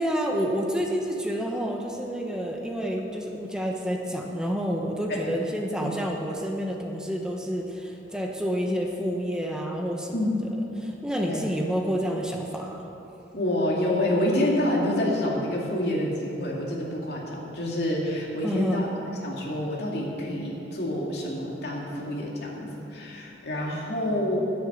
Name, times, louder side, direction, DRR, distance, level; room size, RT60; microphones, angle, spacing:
voice 1, 0.0-10.2 10.8-12.8 18.4-18.8, equal, 5° right, 0 dB, 1.0 m, -29 dB
voice 2, 13.3-18.9 19.2-24.4, left 1 dB, 55° left, -3 dB, 2.5 m, -28 dB
11.0 x 9.7 x 7.5 m, 3.0 s
head